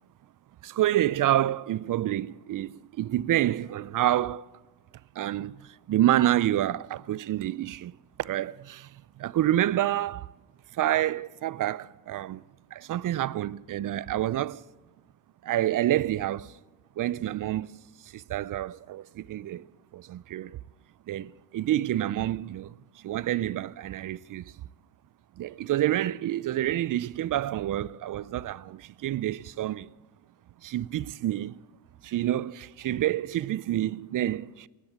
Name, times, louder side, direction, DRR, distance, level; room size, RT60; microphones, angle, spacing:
voice 1, 0.6-4.4 5.2-5.6 5.9-7.9 8.2-8.9 9.2-10.3 10.8-12.4 12.7-14.6 15.4-16.5 17.0-17.8 18.1-19.7 19.9-20.6 21.1-22.7 23.0-24.4 25.4-29.9 30.6-31.6 32.0-34.7, right 13 dB, 50° right, 0.5 m, -28 dB
16.0 x 11.0 x 7.4 m
cardioid pair, 80°, 44 cm